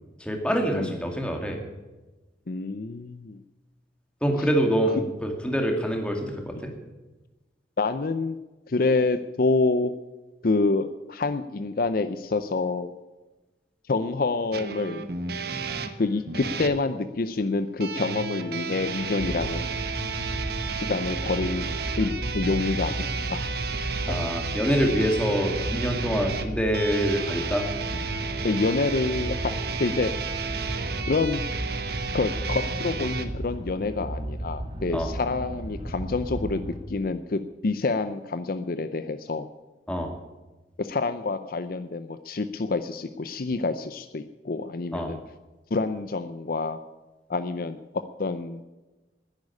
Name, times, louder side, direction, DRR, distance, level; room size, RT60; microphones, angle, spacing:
voice 1, 0.2-1.6 4.2-6.7 24.1-27.7 34.9-35.1 39.9-40.1 44.9-45.1, equal, 5° left, 3 dB, 2.1 m, -26 dB
voice 2, 2.5-3.4 6.6-6.7 7.8-8.4 8.7-9.9 10.4-12.9 13.9-15.1 16.0-19.8 20.8-21.7 22.0-22.9 23.3-23.4 24.1-24.2 28.4-29.5 29.8-30.1 31.1-31.4 32.1-36.6 36.9-39.5 40.8-45.2 45.7-46.8 47.3-47.8 48.2-48.6, left 3 dB, 55° left, 11 dB, 0.6 m, -27 dB
sound 1, 14.5-16.8 17.8-33.2, right 4 dB, 60° right, 1.1 m, -32 dB
sound 2, 19.2-36.8, right 1 dB, 30° right, 2.1 m, -35 dB
10.5 x 10.0 x 9.6 m, 1.2 s
head